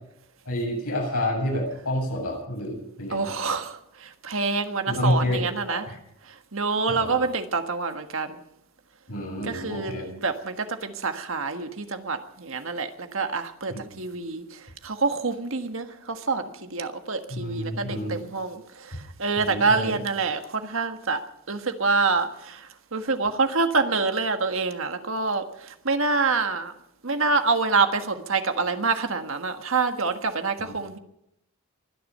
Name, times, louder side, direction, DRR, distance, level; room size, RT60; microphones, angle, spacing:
voice 1, 0.5-3.3 4.9-6.0 6.9-7.3 9.1-10.1 13.7-13.8 17.3-18.2 19.4-20.0 30.6-30.8, left 1 dB, 85° left, -1 dB, 7.9 m, -29 dB
voice 2, 3.1-5.8 6.5-8.4 9.4-14.4 14.8-21.2 21.5-26.7 27.0-31.0, right 4 dB, 65° right, 7 dB, 1.6 m, -26 dB
23.5 x 10.5 x 5.6 m, 0.79 s
head